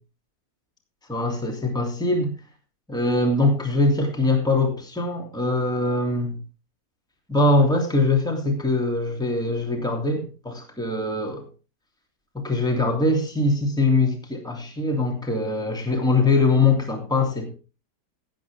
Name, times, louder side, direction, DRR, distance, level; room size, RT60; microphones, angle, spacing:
voice 1, 1.1-2.3 2.9-6.4 7.3-11.5 12.3-17.6, left 2 dB, ahead, 1 dB, 2.9 m, -22 dB
18.0 x 8.9 x 3.6 m, 0.32 s
omnidirectional pair, 1.8 m